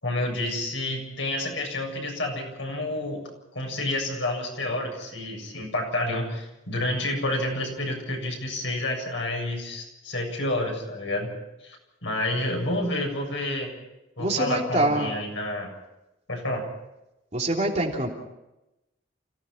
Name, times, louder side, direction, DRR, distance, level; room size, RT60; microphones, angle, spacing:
voice 1, 0.0-3.2 3.5-11.3 11.6-13.7 14.2-15.7 16.3-16.6, left 1 dB, 75° left, 1 dB, 7.4 m, -29 dB
voice 2, 14.2-15.2 17.3-18.1, right 2 dB, 35° right, 0 dB, 3.2 m, -25 dB
29.5 x 17.0 x 5.8 m, 0.94 s
head